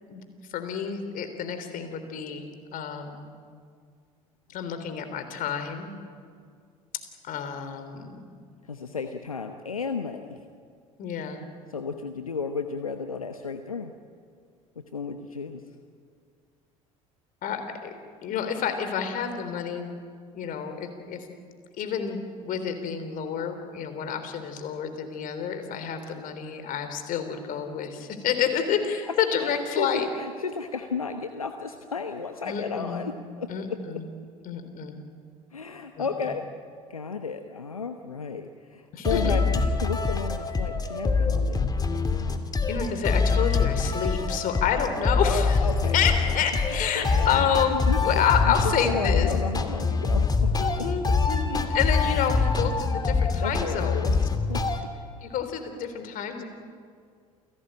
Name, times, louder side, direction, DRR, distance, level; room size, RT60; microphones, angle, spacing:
voice 1, 0.5-2.5 2.7-3.3 4.5-5.9 6.9-8.3 11.0-11.4 17.4-17.9 18.2-19.9 20.3-21.3 21.8-30.1 32.4-33.0 33.5-34.0 34.5-35.0 36.0-36.1 38.9-39.5 42.7-45.6 45.9-49.3 50.6-54.1 55.2-56.4, left 7 dB, 50° left, 8 dB, 3.6 m, -29 dB
voice 2, 8.6-10.4 11.7-13.9 14.8-15.6 29.1-29.2 29.4-33.8 35.5-36.4 36.9-41.7 45.2-46.2 46.7-50.9 53.4-54.6, left 5 dB, 90° left, 7 dB, 1.0 m, -33 dB
sound 1, 39.0-54.8, left 4 dB, 20° left, 2.6 m, -25 dB
28.5 x 17.5 x 9.0 m, 2.2 s
figure-of-eight pair, 60°, 18 cm